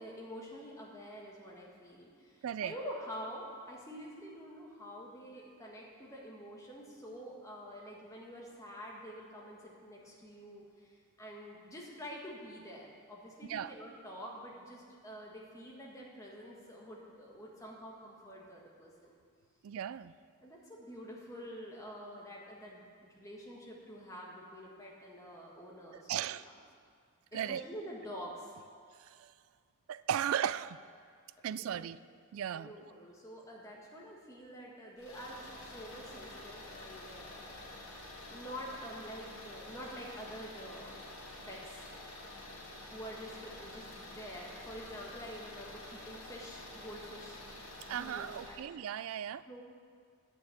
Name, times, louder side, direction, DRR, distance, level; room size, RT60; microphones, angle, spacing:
voice 1, 0.0-19.1 20.4-26.5 27.3-28.5 31.5-31.8 32.5-37.9 38.3-41.1 41.5-41.8 42.9-47.4 48.0-48.6 49.5-49.6, equal, 15° left, -3 dB, 1.6 m, -47 dB
voice 2, 2.4-2.7 13.5-13.7 19.6-20.1 26.1-26.5 27.3-27.6 29.0-29.3 29.9-30.8 31.4-32.0 32.3-32.7 47.9-49.4, right 9 dB, 65° right, 17 dB, 0.3 m, -36 dB
sound 1, 35.0-48.6, left 2 dB, 70° left, 2.0 m, -49 dB
9.6 x 6.2 x 8.6 m, 2.1 s
head